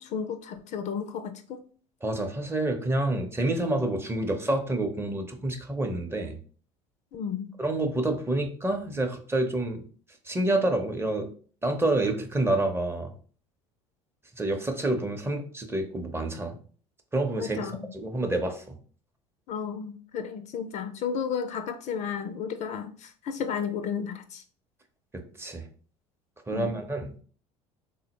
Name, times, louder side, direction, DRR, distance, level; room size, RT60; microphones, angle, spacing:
voice 1, 0.0-1.6 7.1-7.5 17.4-17.9 19.5-24.4 26.5-26.8, left 7 dB, 45° left, 8 dB, 0.4 m, -33 dB
voice 2, 2.0-6.4 7.6-9.8 10.3-11.3 11.6-13.1 14.4-16.6 17.1-18.8 25.1-25.6 26.5-27.2, right 2 dB, 15° right, 4 dB, 0.6 m, -28 dB
3.6 x 2.1 x 2.9 m, 0.43 s
hypercardioid pair, 70°, 17 cm